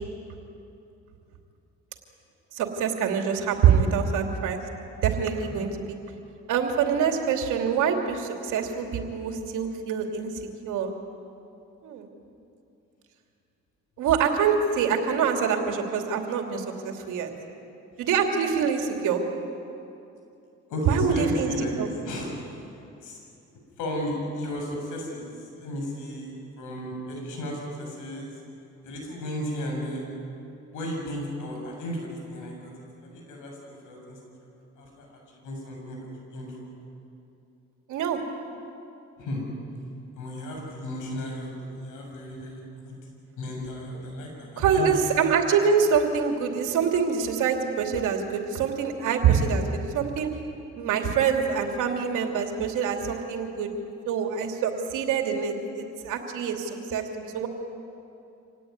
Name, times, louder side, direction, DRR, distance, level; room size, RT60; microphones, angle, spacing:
voice 1, 2.5-4.6 5.0-6.0 6.5-10.3 10.6-10.9 11.8-12.1 14.0-17.3 18.0-19.2 20.9-21.5 21.8-21.9 37.9-38.2 44.6-50.3 50.8-53.7 54.1-57.5, right 6 dB, 90° right, 3 dB, 2.9 m, -25 dB
voice 2, 20.7-21.7 22.0-22.3 23.0-23.2 23.8-28.4 28.8-30.1 30.7-32.7 33.0-34.2 34.8-35.1 35.4-36.6 39.2-39.4 40.2-43.0 43.3-45.0, equal, 90° left, 0 dB, 7.6 m, -34 dB
26.5 x 18.0 x 9.4 m, 2.7 s
cardioid pair, 90°, 30 cm